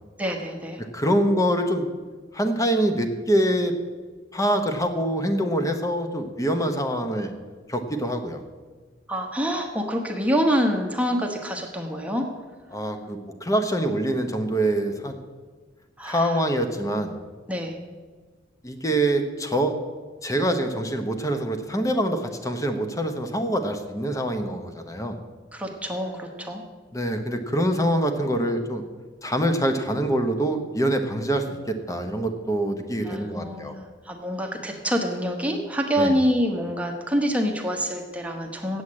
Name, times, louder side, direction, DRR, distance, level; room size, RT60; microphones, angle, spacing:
voice 1, 0.2-0.8 9.1-12.3 16.0-16.4 17.5-17.8 25.5-26.6 33.0-38.8, equal, 5° right, 2 dB, 1.0 m, -26 dB
voice 2, 0.9-1.9 2.3-3.7 4.3-7.3 7.7-8.4 12.7-15.2 16.0-17.1 18.6-19.7 20.2-25.2 26.9-28.8 29.2-33.8 36.0-36.1, right 1 dB, 15° left, 6 dB, 1.0 m, -25 dB
8.0 x 7.9 x 8.6 m, 1.4 s
head